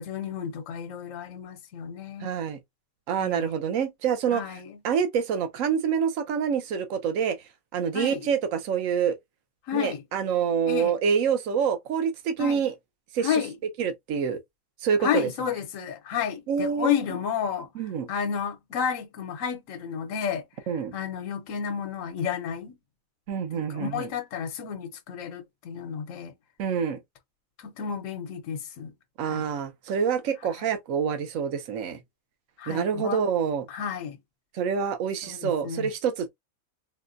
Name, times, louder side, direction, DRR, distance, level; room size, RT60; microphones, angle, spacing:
voice 1, 0.0-2.3 3.2-3.5 4.3-4.8 7.9-8.3 9.7-10.0 10.7-10.9 12.4-12.7 13.2-13.5 15.0-17.7 18.1-20.4 20.9-22.7 23.5-26.3 27.6-28.9 29.2-29.4 32.6-33.2 33.7-34.2 35.2-35.9, left 7 dB, 70° left, 1.1 m, -31 dB
voice 2, 2.2-2.6 3.1-4.6 4.8-7.4 7.7-9.2 9.7-12.7 13.1-13.4 13.8-14.4 14.8-15.3 16.5-17.0 17.7-18.1 20.7-20.9 23.3-24.1 26.6-27.0 29.2-32.0 32.7-33.7 34.5-36.3, right 7 dB, 70° right, 1.1 m, -26 dB
4.0 x 2.2 x 2.5 m
omnidirectional pair, 1.5 m